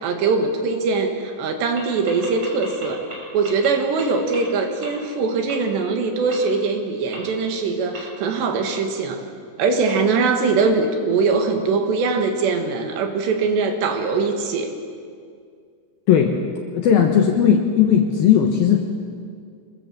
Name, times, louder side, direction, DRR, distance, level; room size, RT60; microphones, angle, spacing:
voice 1, 0.0-3.0 3.3-9.2 9.6-14.7, right 4 dB, 65° right, 5 dB, 3.6 m, -22 dB
sound 1, 1.8-1.9 2.1-3.1 3.4-3.7 4.0-4.1 4.3-4.4 4.8-4.9 5.5-5.6 6.3-6.4 7.1-7.2 7.9-8.0, right 3 dB, 30° right, 7.2 m, -34 dB
voice 2, 16.1-16.4 16.7-18.8, left 8 dB, 70° left, 3 dB, 2.4 m, -16 dB
26.0 x 21.0 x 7.4 m, 2.2 s
omnidirectional pair, 5.6 m